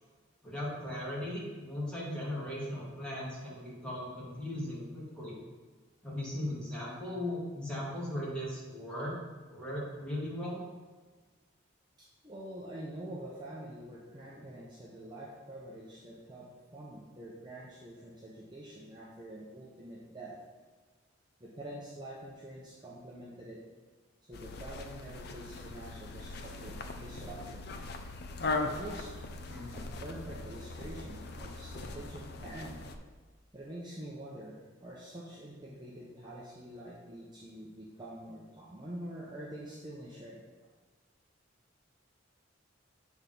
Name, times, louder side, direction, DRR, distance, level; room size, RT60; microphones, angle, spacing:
voice 1, 0.4-5.4 6.0-9.2 9.5-10.6 29.5-29.8, left 1 dB, 5° left, -7 dB, 1.8 m, -38 dB
voice 2, 12.0-20.4 21.4-23.6 24.3-27.7 28.6-29.1 29.7-32.8 33.5-40.5, right 1 dB, 20° right, -6 dB, 0.8 m, -46 dB
sound 1, 24.3-33.0, left 3 dB, 50° left, 0.5 m, -40 dB
8.0 x 3.5 x 5.3 m, 1.4 s
head